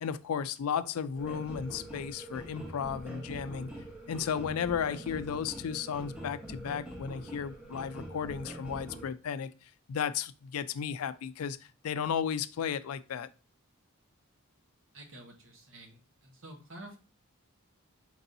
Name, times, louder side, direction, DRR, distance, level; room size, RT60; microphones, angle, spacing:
voice 1, 0.0-3.7 4.1-9.5 9.9-11.6 11.8-13.3, left 7 dB, 85° left, 0.4 m, -34 dB
sound 1, 1.2-9.1, right 1 dB, 5° right, 1.0 m, -44 dB
voice 2, 14.9-17.0, right 1 dB, 60° right, 1.2 m, -49 dB
4.6 x 4.0 x 2.6 m
head